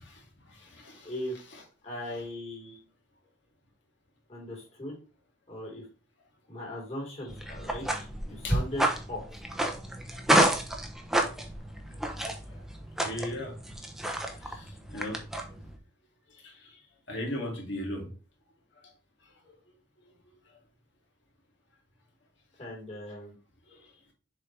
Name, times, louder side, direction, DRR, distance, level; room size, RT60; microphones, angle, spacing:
voice 1, 0.5-1.1 1.5-1.6 8.4-8.6 11.3-11.4 12.1-12.2 12.5-12.6 13.0-13.5 14.4-15.2 16.3-16.7 17.1-18.1 23.7-23.8, left 1 dB, 65° left, -1 dB, 2.6 m, -38 dB
voice 2, 1.0-1.3 1.8-2.8 4.3-5.0 5.5-5.8 6.5-9.2 22.6-23.3, left 1 dB, 35° left, -2 dB, 3.2 m, -39 dB
sound 1, 7.3-15.7, right 1 dB, ahead, 0.8 m, -30 dB
6.8 x 4.6 x 3.4 m, 0.35 s
head